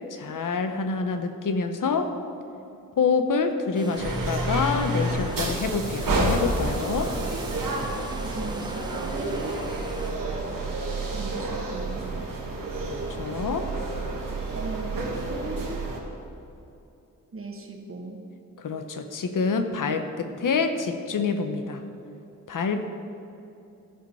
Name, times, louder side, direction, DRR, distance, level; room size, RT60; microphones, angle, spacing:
voice 1, 0.1-2.1 3.0-7.1 12.9-13.7 18.6-21.8 22.5-22.9, left 4 dB, 75° left, 7 dB, 0.9 m, -27 dB
sound 1, 3.7-10.1, right 1 dB, 15° right, 0.9 m, -42 dB
sound 2, 4.0-16.0, right 2 dB, 85° right, 1.8 m, -29 dB
voice 2, 8.2-9.6 11.1-12.2 14.5-15.8 17.3-18.2, right 2 dB, 40° right, 2 dB, 1.4 m, -38 dB
15.0 x 5.4 x 5.6 m, 2.8 s
wide cardioid pair, 80°, 32 cm